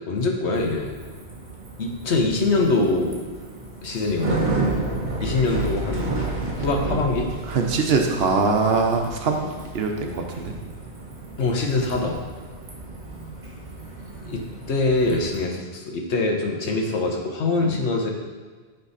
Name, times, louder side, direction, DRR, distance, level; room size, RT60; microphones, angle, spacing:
voice 1, 0.1-0.9 1.8-3.2 3.8-4.4 5.2-6.2 6.6-7.3 11.4-12.2 14.3-18.1, left 3 dB, 70° left, 1 dB, 1.2 m, -23 dB
Bicycle, 0.5-15.4, right 3 dB, 40° right, 1.3 m, -32 dB
voice 2, 4.5-4.8 7.5-10.5 17.6-17.7, right 4 dB, 60° right, 3 dB, 0.9 m, -23 dB
9.0 x 3.4 x 4.1 m, 1.5 s
omnidirectional pair, 1.2 m